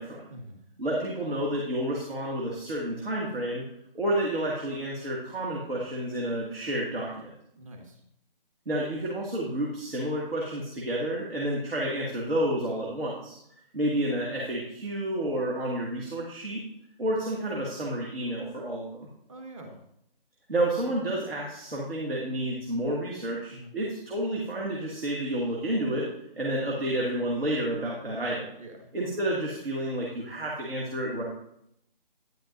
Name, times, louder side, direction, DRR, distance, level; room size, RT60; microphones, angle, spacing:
voice 1, 0.8-3.7 3.9-7.3 8.7-13.4 13.7-16.6 17.0-19.1 20.5-26.1 26.4-28.5 28.9-31.2, right 1 dB, 80° right, -3 dB, 2.2 m, -30 dB
voice 2, 7.5-8.0 19.3-19.8 23.5-23.7 28.6-28.9, right 1 dB, 35° right, 3 dB, 1.6 m, -45 dB
10.5 x 8.9 x 2.6 m, 0.76 s
figure-of-eight pair, 150°, 29 cm